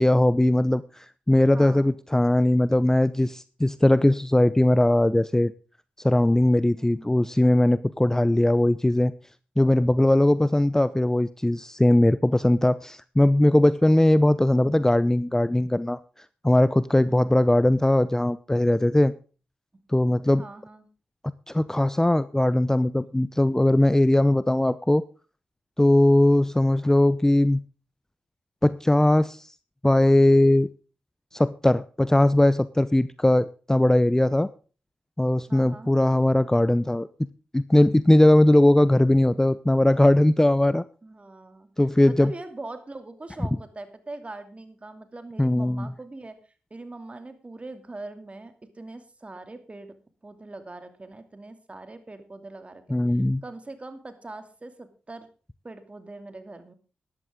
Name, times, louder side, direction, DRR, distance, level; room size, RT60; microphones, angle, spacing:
voice 1, 0.0-5.5 6.0-9.1 9.6-16.0 16.4-19.1 19.9-20.4 21.5-25.0 25.8-27.6 28.6-29.5 29.8-30.7 31.3-34.5 35.2-37.1 37.5-40.8 41.8-42.3 45.4-45.9 52.9-53.4, left 1 dB, 15° left, 16 dB, 0.6 m, -20 dB
voice 2, 1.5-1.9 6.7-7.1 14.5-14.9 17.2-17.4 20.4-20.9 35.5-35.9 41.0-41.7 42.1-50.0 50.2-52.8 53.4-55.3 55.6-56.7, right 2 dB, 35° right, 9 dB, 2.6 m, -42 dB
13.5 x 11.0 x 3.7 m, 0.36 s
supercardioid pair, 45°, 4 cm